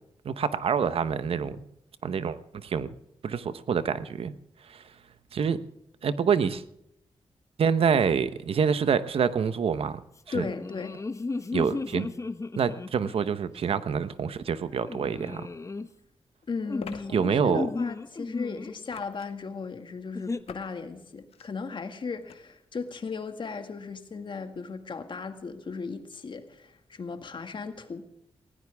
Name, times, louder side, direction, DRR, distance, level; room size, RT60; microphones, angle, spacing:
voice 1, 0.2-1.6 2.0-2.9 3.2-4.3 4.7-4.8 5.3-5.6 6.0-6.6 7.6-10.0 10.3-10.5 11.5-12.1 12.6-15.4 17.1-17.7, right 6 dB, 75° right, 1.1 m, -26 dB
voice 2, 10.3-11.0 16.5-28.0, left 4 dB, 55° left, 2.1 m, -36 dB
sound 1, 10.3-13.3 14.8-15.9 16.7-18.8 20.1-20.4, left 3 dB, 30° left, 1.1 m, -35 dB
sound 2, 15.3-15.4 16.8-17.0 18.9-19.4 20.5-20.7 21.2-21.5 22.3-22.4, left 7 dB, 85° left, 1.3 m, -43 dB
19.5 x 17.5 x 3.6 m
cardioid pair, 75°, 10 cm